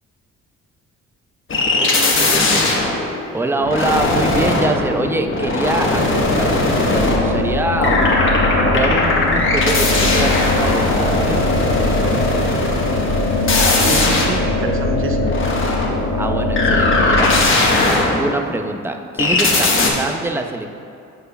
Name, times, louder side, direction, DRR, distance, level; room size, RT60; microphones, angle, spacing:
sound 1, 1.5-7.5 7.8-18.6 19.2-19.9, left 2 dB, 45° left, 1.2 m, -19 dB
voice 1, 1.7-2.8 13.4-15.3, right 3 dB, 45° right, 4 dB, 0.8 m, -27 dB
voice 2, 3.3-8.0 8.6-11.5 16.1-17.3 17.9-20.7, right 2 dB, 10° right, 5 dB, 0.4 m, -24 dB
sound 2, 6.9-17.4, left 2 dB, 70° left, 1.0 m, -21 dB
13.5 x 4.5 x 2.3 m, 2.5 s
cardioid pair, 90°, 30 cm